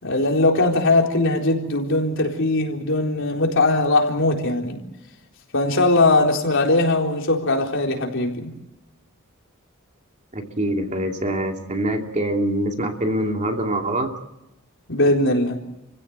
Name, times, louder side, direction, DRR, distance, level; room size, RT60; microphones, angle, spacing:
voice 1, 0.0-4.8 5.5-8.5 14.9-15.6, left 2 dB, 65° left, 1 dB, 4.0 m, -20 dB
voice 2, 10.3-14.1, right 1 dB, 35° right, 3 dB, 2.7 m, -24 dB
29.5 x 16.5 x 8.1 m, 0.92 s
head